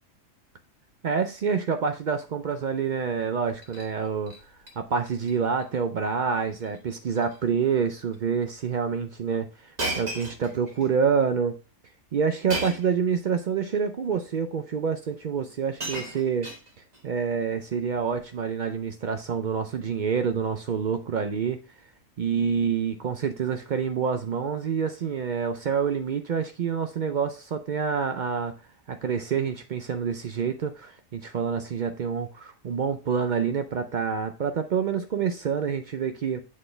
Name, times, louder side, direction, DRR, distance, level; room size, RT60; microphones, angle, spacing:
voice 1, 1.0-4.3 4.8-11.6 12.1-16.5 17.0-21.6 22.2-28.5 28.9-36.4, right 6 dB, 65° right, 8 dB, 0.4 m, -27 dB
Shatter, 3.5-3.9 4.3-4.7 5.1-5.3 5.6-5.7 6.6-6.8 7.1-7.4 8.1-8.2 9.8-10.9 12.5-13.0 14.0-14.1 15.1-15.2 15.5-17.0 18.0-18.2, right 2 dB, 30° right, 1.3 m, -35 dB
7.4 x 4.2 x 3.2 m, 0.33 s
omnidirectional pair, 1.4 m